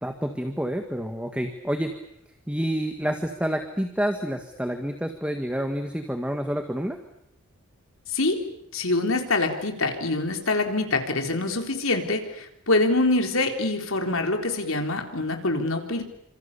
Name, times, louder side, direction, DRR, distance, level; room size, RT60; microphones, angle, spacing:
voice 1, 0.0-1.9 2.5-7.0, equal, 5° right, 5 dB, 1.8 m, -28 dB
voice 2, 8.1-8.4 8.7-16.0, left 2 dB, 70° left, 4 dB, 3.9 m, -25 dB
28.5 x 26.5 x 7.0 m, 0.76 s
head